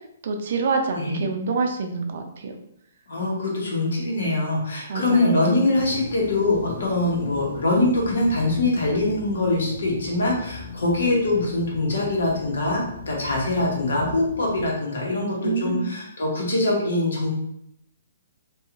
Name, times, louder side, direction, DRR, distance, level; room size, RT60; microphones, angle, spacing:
voice 1, 0.2-2.5 4.9-5.4 15.4-15.9, right 4 dB, 60° right, 4 dB, 0.4 m, -26 dB
voice 2, 0.9-1.2 3.1-17.3, left 2 dB, 80° left, -2 dB, 1.0 m, -23 dB
sound 1, 5.7-14.7, left 5 dB, 60° left, 0.5 m, -38 dB
2.7 x 2.3 x 2.4 m, 0.77 s
hypercardioid pair, 155°, 0 cm